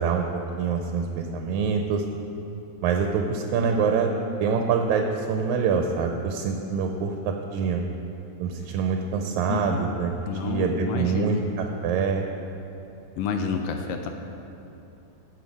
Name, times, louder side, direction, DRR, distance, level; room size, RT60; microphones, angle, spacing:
voice 1, 0.0-2.1 2.8-4.1 4.4-7.8 8.4-10.1 10.4-12.3, right 6 dB, 85° right, 3 dB, 2.0 m, -25 dB
voice 2, 9.5-9.9 10.3-11.5 13.2-14.1, left 5 dB, 75° left, 5 dB, 1.5 m, -29 dB
15.5 x 5.5 x 5.2 m, 2.9 s
omnidirectional pair, 3.3 m